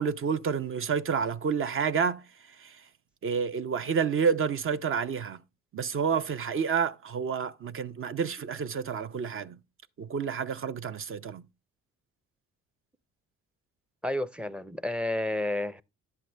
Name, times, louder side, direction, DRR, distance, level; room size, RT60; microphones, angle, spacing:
voice 1, 0.0-2.9 3.2-5.4 5.7-9.6 10.0-11.4, right 6 dB, 45° right, 0.7 m, -29 dB
voice 2, 14.0-15.8, left 1 dB, 5° right, 0.5 m, -30 dB
10.5 x 7.8 x 3.3 m
cardioid pair, 90°, 30 cm